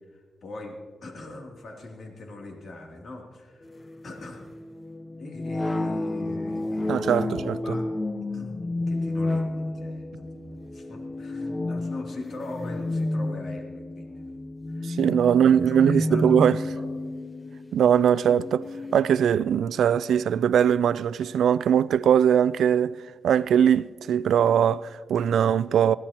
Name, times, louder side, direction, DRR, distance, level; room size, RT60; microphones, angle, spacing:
voice 1, 0.1-3.7 4.0-4.4 5.2-7.9 8.2-16.9, left 2 dB, 55° left, 2.8 m, -42 dB
sound 1, 3.7-19.0, left 2 dB, 25° left, 0.6 m, -31 dB
voice 2, 6.9-7.8 14.8-16.6 17.7-23.0 23.2-26.0, right 8 dB, 80° right, 0.3 m, -21 dB
22.5 x 15.5 x 2.9 m
cardioid pair, 105°, 0 cm